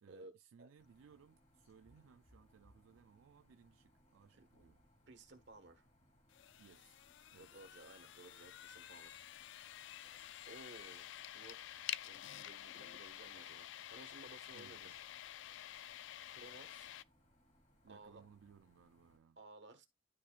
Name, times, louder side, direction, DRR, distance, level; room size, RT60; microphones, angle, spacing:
voice 1, 0.0-4.8 6.6-7.0 7.3-7.6 14.5-15.0 17.8-19.4, right 7 dB, 85° right, 0.4 m, -64 dB
sound 1, 0.8-19.2, equal, 35° left, 2.0 m, -71 dB
voice 2, 5.1-5.9 7.4-10.1 10.5-11.6 12.0-15.0 16.3-16.9 17.9-18.2 19.4-19.9, right 2 dB, 60° right, 1.4 m, -58 dB
sound 2, 6.3-17.0, left 12 dB, 65° left, 0.3 m, -50 dB
12.0 x 4.4 x 2.4 m
head